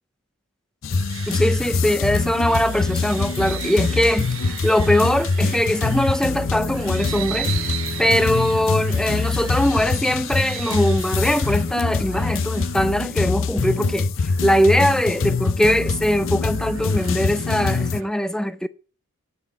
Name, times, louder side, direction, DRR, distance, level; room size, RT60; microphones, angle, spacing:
sound 1, 0.8-18.0, left 4 dB, 65° left, 0.6 m, -24 dB
sound 2, 0.9-18.1, right 9 dB, 70° right, 1.1 m, -38 dB
voice 1, 1.3-7.5 8.0-14.1 14.4-18.7, equal, 5° left, 0.4 m, -21 dB
9.7 x 7.1 x 7.3 m
head